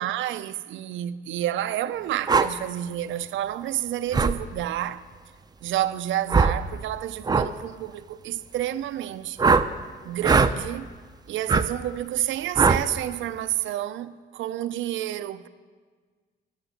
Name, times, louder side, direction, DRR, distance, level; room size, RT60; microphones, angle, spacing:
voice 1, 0.0-5.0 5.6-9.6 10.0-10.9 11.3-15.5, right 12 dB, 75° right, 0.5 m, -29 dB
sound 1, 2.3-2.5 4.1-4.4 6.3-6.6 7.2-7.5 9.4-9.7 10.2-10.5 11.5-11.7 12.6-12.8, right 4 dB, 20° right, 0.4 m, -19 dB
11.5 x 6.9 x 6.4 m
cardioid pair, 90°, 20 cm